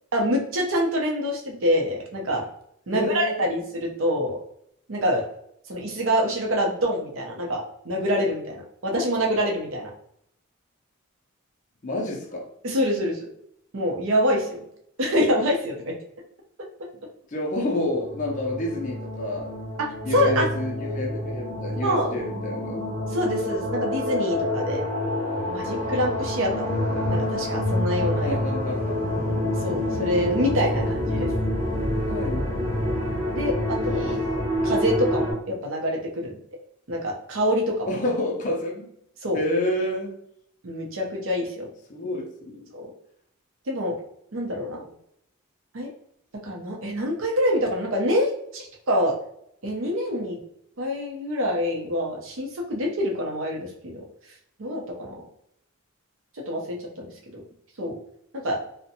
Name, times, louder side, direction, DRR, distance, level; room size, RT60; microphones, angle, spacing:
voice 1, 0.1-2.5 2.9-4.4 4.9-5.3 5.7-9.9 12.6-13.3 13.7-14.7 15.0-15.9 20.1-20.5 21.8-22.1 23.1-24.9 25.5-28.4 29.6-31.3 33.3-34.3 34.6-36.4 36.9-37.9 39.2-39.4 40.6-41.7 42.7-42.9 43.7-44.0 44.3-44.8 45.7-45.9 46.4-49.1 49.6-50.4 50.8-54.0 54.6-55.2 56.3-57.4 57.8-58.0 58.3-58.6, equal, 65° right, 0 dB, 0.6 m, -26 dB
voice 2, 2.9-3.6 11.8-12.5 17.3-19.5 20.1-22.8 28.2-29.3 31.2-31.3 31.7-32.9 37.9-38.9 39.3-40.1 41.9-42.7, left 1 dB, 35° left, 0 dB, 0.5 m, -29 dB
sound 1, 17.8-35.3, left 1 dB, 35° right, 0.8 m, -27 dB
2.5 x 2.1 x 2.7 m, 0.73 s
head